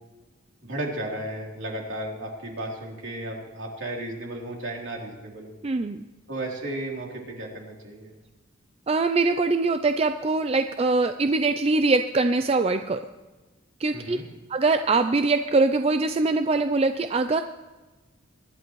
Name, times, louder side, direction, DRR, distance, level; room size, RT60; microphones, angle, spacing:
voice 1, 0.6-5.5 6.3-8.1 13.9-14.2, right 1 dB, 65° right, -2 dB, 3.3 m, -34 dB
voice 2, 5.6-6.0 8.9-13.0 13.8-14.2 14.5-17.4, right 3 dB, 30° right, 8 dB, 0.4 m, -23 dB
23.5 x 11.5 x 3.1 m, 1.2 s
head